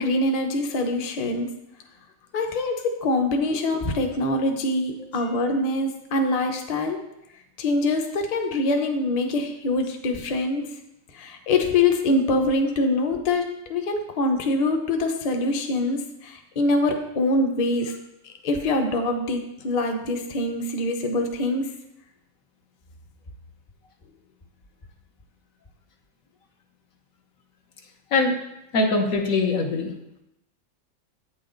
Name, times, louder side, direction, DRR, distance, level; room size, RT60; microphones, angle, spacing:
voice 1, 0.0-1.5 2.3-7.0 7.6-10.6 11.1-13.4 13.7-17.9 18.4-21.7, left 2 dB, 35° left, 4 dB, 0.7 m, -24 dB
voice 2, 28.7-29.9, left 3 dB, 75° left, 3 dB, 1.4 m, -22 dB
8.5 x 6.0 x 3.8 m, 0.84 s
omnidirectional pair, 1.5 m